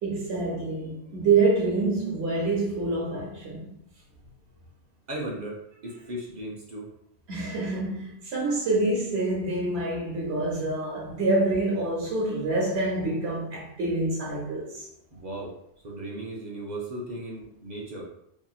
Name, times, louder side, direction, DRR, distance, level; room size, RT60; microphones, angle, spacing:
voice 1, 0.0-3.7 7.3-14.8, right 3 dB, 80° right, 1.0 m, -26 dB
voice 2, 5.1-6.9 15.1-15.5 15.8-18.1, right 1 dB, 50° right, 0.7 m, -36 dB
2.7 x 2.7 x 2.3 m
omnidirectional pair, 1.1 m